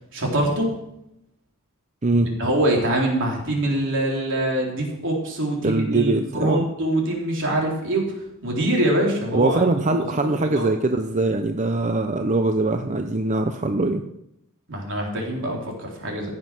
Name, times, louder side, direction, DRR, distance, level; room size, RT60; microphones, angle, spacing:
voice 1, 0.1-0.7 2.1-8.1 8.4-9.6 9.9-10.0 10.3-10.7 14.7-16.3, right 1 dB, 60° right, -1 dB, 4.0 m, -24 dB
voice 2, 2.0-2.4 5.6-6.7 9.3-14.0, right 2 dB, 35° right, 7 dB, 0.7 m, -22 dB
16.0 x 7.6 x 6.1 m, 0.81 s
head